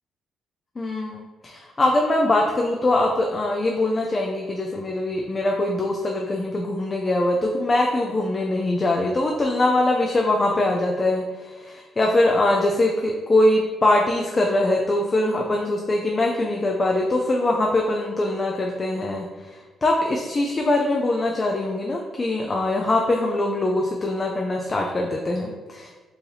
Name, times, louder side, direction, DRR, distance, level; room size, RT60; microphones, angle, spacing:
voice 1, 0.8-25.9, left 2 dB, 30° left, 0 dB, 0.4 m, -22 dB
4.7 x 2.5 x 3.4 m, 1.3 s
cardioid pair, 90°, 0 cm